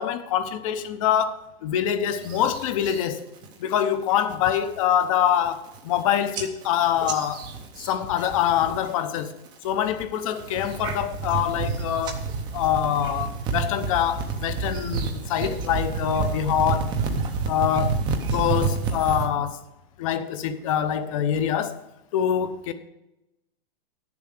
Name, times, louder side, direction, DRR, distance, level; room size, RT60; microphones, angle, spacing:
voice 1, 0.0-3.2 3.6-7.5 7.8-9.3 9.6-12.2 12.5-17.0 17.4-18.0 18.3-19.6 20.0-21.8 22.1-22.7, left 10 dB, 35° left, 0.8 m, -25 dB
sound 1, 2.2-3.0 3.4-3.8 4.2-4.6 5.0-5.1 5.3-6.0 6.3-8.9 9.2-9.7 10.2-19.3, right 4 dB, 15° right, 0.6 m, -29 dB
9.8 x 7.0 x 6.5 m
hypercardioid pair, 165°, 30 cm